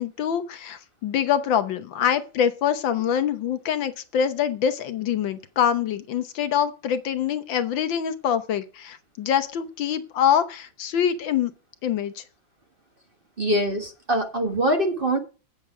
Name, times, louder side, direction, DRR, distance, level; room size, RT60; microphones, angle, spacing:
voice 1, 0.0-11.5 11.8-12.2, left 9 dB, 70° left, 1.5 m, -25 dB
voice 2, 13.4-15.2, right 1 dB, 30° right, 1.3 m, -23 dB
8.5 x 7.6 x 4.8 m
omnidirectional pair, 2.3 m